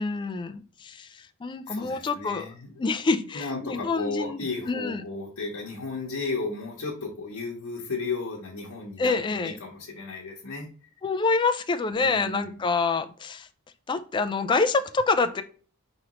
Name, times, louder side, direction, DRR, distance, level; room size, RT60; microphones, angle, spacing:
voice 1, 0.0-2.5 2.8-5.0 9.0-9.6 11.0-13.5 13.9-15.4, left 4 dB, 20° left, 0.3 m, -27 dB
voice 2, 1.7-2.7 3.3-10.7 12.0-12.5, left 3 dB, 70° left, 0.9 m, -34 dB
4.9 x 3.1 x 2.9 m
head